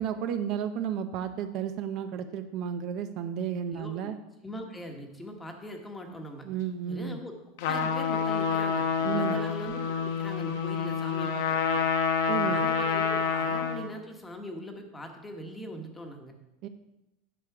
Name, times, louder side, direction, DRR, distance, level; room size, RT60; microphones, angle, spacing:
voice 1, 0.0-4.2 6.4-7.2 9.0-9.4 12.3-12.7 16.6-16.7, right 8 dB, 45° right, 8 dB, 0.6 m, -32 dB
voice 2, 3.7-4.1 4.4-6.4 6.9-7.4 7.6-11.8 12.4-16.3, equal, 10° left, 3 dB, 1.2 m, -41 dB
Trumpet, 7.6-13.9, left 6 dB, 70° left, 1.0 m, -28 dB
10.0 x 6.6 x 4.7 m, 0.94 s
supercardioid pair, 150°, 0 cm